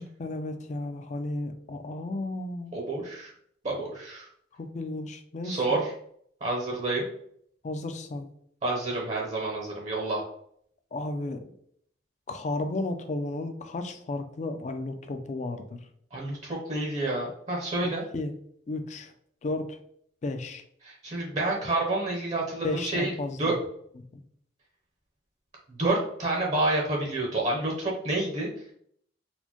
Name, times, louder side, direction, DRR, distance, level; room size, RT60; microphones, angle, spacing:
voice 1, 0.0-2.8 4.5-5.8 7.6-8.3 10.9-11.5 12.3-15.9 18.1-18.3 18.7-19.1 19.4-19.8 20.2-20.6 22.6-23.5 24.0-24.2, left 2 dB, 40° left, 7 dB, 0.4 m, -33 dB
voice 2, 2.7-3.3 3.6-4.3 5.4-5.9 6.4-7.1 8.6-10.2 16.1-18.0 20.8-23.1 23.4-23.5 25.7-28.5, right 2 dB, 40° right, -2 dB, 0.7 m, -29 dB
4.2 x 2.1 x 2.9 m, 0.67 s
head